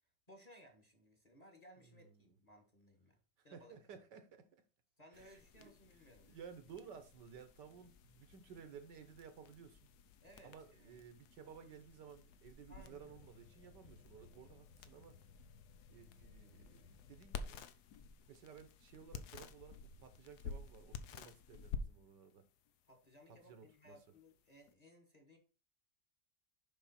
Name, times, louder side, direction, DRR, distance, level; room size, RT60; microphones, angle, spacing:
voice 1, 0.3-3.2 3.4-3.8 5.0-6.3 10.2-11.0 12.7-13.1 22.9-25.4, equal, 25° left, 1.5 m, -62 dB
voice 2, 1.8-2.4 3.5-4.5 5.1-5.7 6.3-9.8 10.4-15.2 15.9-17.6 18.3-22.4 23.3-24.0, right 7 dB, 70° right, 1.6 m, -56 dB
sound 1, 5.1-24.7, left 5 dB, 65° left, 1.2 m, -52 dB
7.0 x 5.5 x 4.2 m
omnidirectional pair, 2.0 m